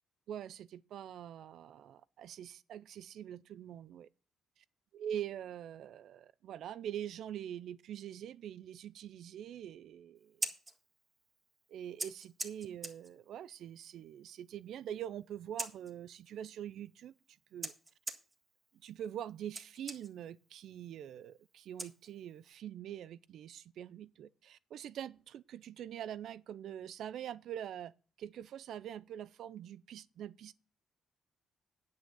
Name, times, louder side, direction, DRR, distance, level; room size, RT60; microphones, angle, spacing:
voice 1, 0.3-4.1 4.9-10.5 11.7-17.1 17.5-17.7 18.7-27.9 28.2-30.5, right 10 dB, 75° right, 0.5 m, -44 dB
Scissors, 10.2-22.5, right 2 dB, 25° right, 1.7 m, -47 dB
9.6 x 6.3 x 7.0 m
cardioid pair, 90°, 0 cm